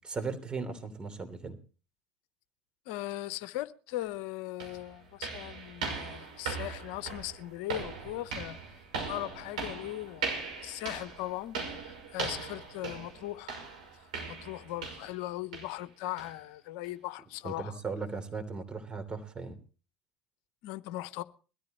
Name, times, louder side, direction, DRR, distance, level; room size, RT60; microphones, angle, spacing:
voice 1, 0.0-1.6 17.4-19.6, right 4 dB, 25° right, 3.1 m, -37 dB
voice 2, 2.9-8.6 9.1-10.3 10.6-13.5 14.3-17.8 20.6-21.2, left 16 dB, 65° left, 0.8 m, -39 dB
sound 1, 4.0-4.1 4.6-15.2 15.5-15.8 16.2-16.4 16.8-16.9 17.5-17.6, right 4 dB, 80° right, 5.8 m, -39 dB
22.0 x 13.5 x 3.0 m
hypercardioid pair, 70°, 4 cm